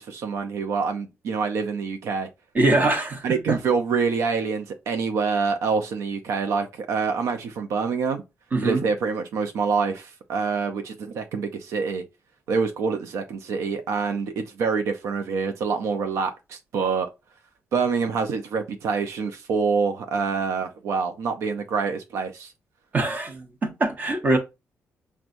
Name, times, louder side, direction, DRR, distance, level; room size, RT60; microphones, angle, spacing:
voice 1, 0.0-2.3 3.2-8.2 8.6-12.0 12.5-17.1 17.7-22.5, right 5 dB, 80° right, 0.6 m, -26 dB
voice 2, 2.5-3.6 8.5-8.8 22.9-24.4, right 2 dB, 35° right, 1.1 m, -23 dB
6.0 x 2.3 x 2.6 m
cardioid pair, 140°, 5 cm